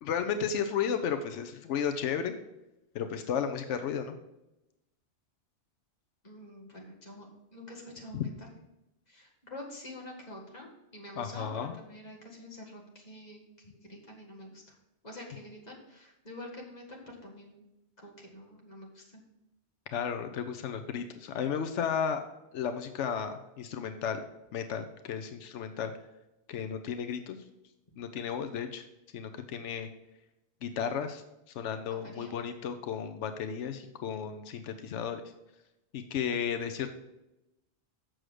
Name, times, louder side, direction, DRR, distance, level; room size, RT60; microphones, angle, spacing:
voice 1, 0.0-2.3 2.9-4.2 8.1-8.2 11.2-11.7 19.9-22.2 22.5-24.2 24.5-25.9 26.5-27.4 28.0-28.8 29.1-29.9 30.6-31.2 31.5-35.2 35.9-36.9, left 7 dB, 90° left, 7 dB, 1.0 m, -33 dB
voice 2, 6.2-8.5 9.1-14.8 15.0-17.6 18.0-19.2 32.0-32.3, left 1 dB, 35° left, -1 dB, 1.9 m, -47 dB
7.6 x 6.3 x 4.9 m, 0.93 s
omnidirectional pair, 1.2 m